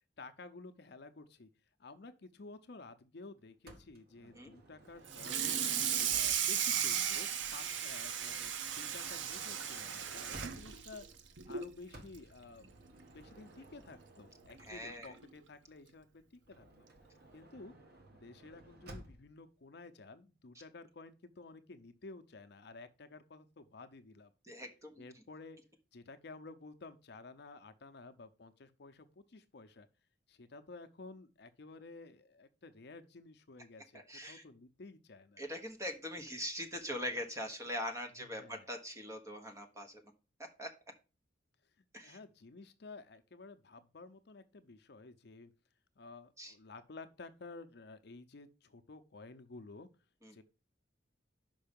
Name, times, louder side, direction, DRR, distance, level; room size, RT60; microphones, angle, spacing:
voice 1, 0.2-1.5 1.8-5.7 6.1-11.0 11.5-12.7 13.1-16.9 17.3-17.8 18.2-24.3 25.0-25.6 25.9-29.9 30.3-35.4 38.2-38.7 42.0-45.5 46.0-49.9 50.3-50.4, left 3 dB, 60° left, 0.6 m, -53 dB
Motor vehicle (road) / Sliding door, 3.7-6.7 7.7-11.0 11.9-15.2 16.4-19.4, right 1 dB, 55° right, 1.4 m, -56 dB
Water tap faucet / Sink (filling or washing), 5.1-11.7 12.1-12.4 12.7-12.8 13.2-13.3 14.5-14.6 15.0-15.2, right 8 dB, 75° right, 0.7 m, -35 dB
voice 2, 14.7-15.1 24.5-25.0 33.9-34.4 35.4-40.0 40.6-40.7 41.9-42.2 46.4-46.5 50.2-50.4, equal, 15° right, 1.2 m, -42 dB
5.6 x 5.4 x 5.2 m
head